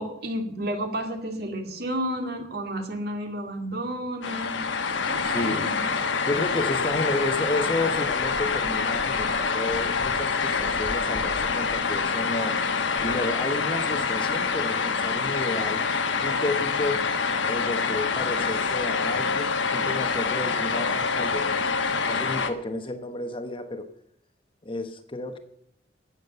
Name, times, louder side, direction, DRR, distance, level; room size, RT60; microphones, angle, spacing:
voice 1, 0.0-4.6 5.1-5.8, right 1 dB, 55° right, 4 dB, 2.3 m, -31 dB
sound 1, 4.2-22.5, left 5 dB, 85° left, 1.2 m, -26 dB
voice 2, 5.2-5.7 6.2-12.6 13.0-15.8 16.2-17.0 17.4-21.7 22.0-23.9 24.6-25.4, left 2 dB, 30° left, 8 dB, 1.0 m, -31 dB
17.5 x 7.3 x 6.8 m, 0.72 s
head